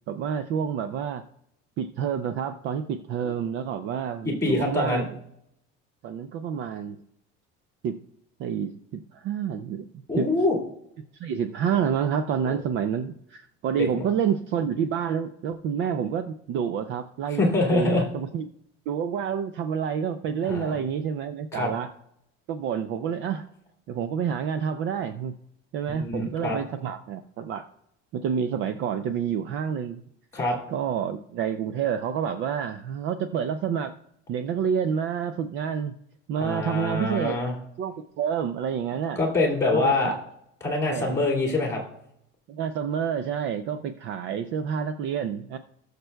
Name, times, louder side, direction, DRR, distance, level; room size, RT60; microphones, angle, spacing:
voice 1, 0.1-1.2 1.8-5.1 6.0-7.0 7.8-8.0 8.4-10.3 11.1-17.4 17.7-18.5 18.9-21.9 22.5-23.5 23.9-25.3 25.7-27.7 28.1-30.0 30.7-33.9 34.3-35.9 36.3-37.4 37.8-39.2 39.7-40.2 40.9-41.2 42.5-45.6, right 7 dB, 40° right, 9 dB, 0.4 m, -28 dB
voice 2, 4.2-5.1 10.1-10.5 12.5-12.6 14.0-14.1 17.4-18.0 20.5-20.8 21.5-21.7 25.9-26.6 30.3-30.6 36.4-37.5 39.2-40.1 40.6-41.8, left 2 dB, 10° left, -1 dB, 2.0 m, -25 dB
19.0 x 6.6 x 2.2 m, 0.75 s
cardioid pair, 170°, 29 cm